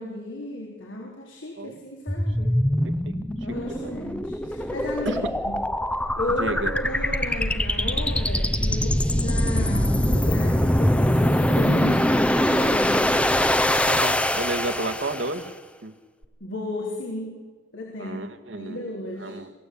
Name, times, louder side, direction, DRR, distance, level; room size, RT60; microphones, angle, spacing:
voice 1, 0.0-2.6 3.4-5.6 6.2-13.1 16.4-17.4 17.7-18.2 18.5-19.4, left 1 dB, 80° left, 0 dB, 4.0 m, -33 dB
sound 1, 2.1-15.5, left 1 dB, 5° left, 0.9 m, -23 dB
voice 2, 2.8-3.2 3.7-3.9 5.1-5.2 6.4-6.7 13.9-15.5 15.8-15.9 18.0-19.5, right 2 dB, 75° right, 8 dB, 2.0 m, -32 dB
sound 2, 8.1-8.6 9.5-10.0 11.5-12.1 13.0-13.7, equal, 55° right, 2.0 m, -39 dB
27.5 x 16.0 x 8.6 m, 1.4 s
head